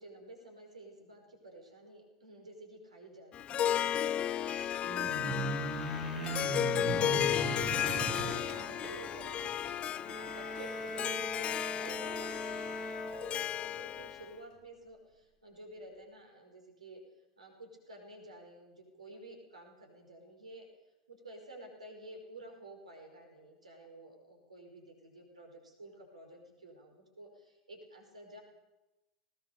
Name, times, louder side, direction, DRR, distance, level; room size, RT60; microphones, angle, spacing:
voice 1, 0.0-9.5 10.1-17.0 17.4-20.7 21.1-28.4, right 1 dB, 80° right, 3 dB, 5.2 m, -52 dB
Harp, 3.3-14.3, left 10 dB, 35° left, 0.7 m, -34 dB
sound 1, 4.8-9.8, right 3 dB, 20° right, 8.0 m, -38 dB
sound 2, 9.9-13.8, left 2 dB, 15° left, 7.2 m, -41 dB
20.0 x 19.5 x 6.8 m, 1.0 s
figure-of-eight pair, 80°, 4 cm